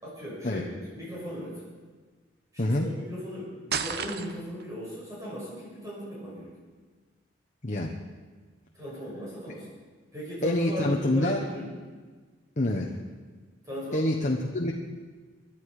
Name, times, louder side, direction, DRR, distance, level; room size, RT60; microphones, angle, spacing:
voice 1, 0.0-1.6 2.5-6.5 8.7-9.7 10.1-11.8 13.6-14.1, equal, 20° right, -8 dB, 6.4 m, -37 dB
sound 1, 3.7-4.6, right 7 dB, 60° right, 1.0 m, -32 dB
voice 2, 10.4-11.4 12.6-12.9 13.9-14.7, left 1 dB, 40° left, 0 dB, 1.2 m, -26 dB
24.5 x 11.5 x 5.0 m, 1.4 s
head